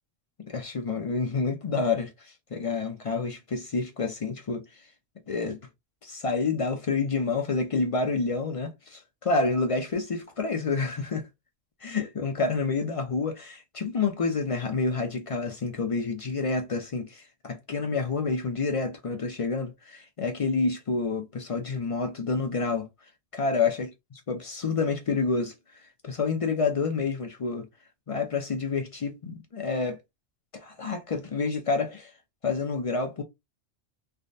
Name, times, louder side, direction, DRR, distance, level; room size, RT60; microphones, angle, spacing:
voice 1, 0.5-4.8 5.3-5.6 6.0-11.3 11.8-22.9 23.3-23.9 24.3-25.5 26.0-27.7 28.1-30.0 30.5-32.1 32.4-33.2, left 4 dB, 55° left, 0.3 m, -28 dB
3.3 x 2.1 x 2.6 m
omnidirectional pair, 1.2 m